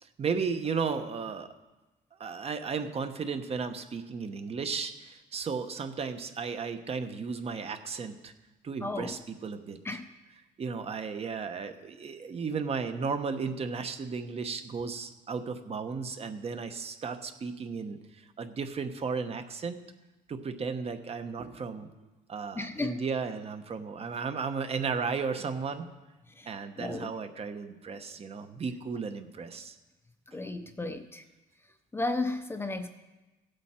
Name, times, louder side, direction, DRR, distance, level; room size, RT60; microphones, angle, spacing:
voice 1, 0.2-1.5 2.2-8.3 8.6-9.8 10.6-19.8 20.3-21.9 22.3-25.9 26.5-29.8, right 5 dB, 35° right, 8 dB, 1.0 m, -34 dB
voice 2, 8.8-9.2 9.8-10.1 22.5-23.0 26.4-26.5 26.8-27.1 30.3-31.2 31.9-32.9, left 2 dB, 15° left, 8 dB, 0.7 m, -34 dB
16.0 x 8.1 x 4.4 m, 1.1 s
cardioid pair, 110°, 17 cm